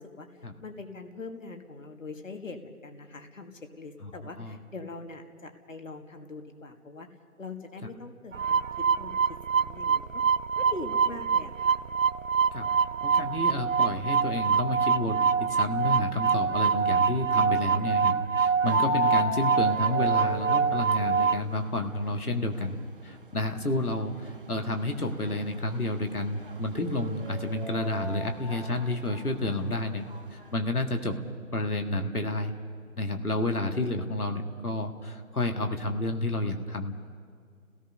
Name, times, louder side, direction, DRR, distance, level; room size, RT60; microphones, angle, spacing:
voice 1, 0.0-7.1 7.4-8.6 9.0-9.2 9.5-10.2 10.6-11.8, left 3 dB, 60° left, 5 dB, 1.9 m, -42 dB
sound 1, 8.3-21.4, right 6 dB, 65° right, 0.6 m, -25 dB
voice 2, 13.0-22.8 23.0-30.0 30.3-31.2 31.5-32.5 33.0-37.0, left 2 dB, 90° left, 4 dB, 1.9 m, -30 dB
sound 2, 18.7-30.6, left 4 dB, 40° right, 0.8 m, -39 dB
30.0 x 17.5 x 5.3 m, 2.1 s
figure-of-eight pair, 160°, 43 cm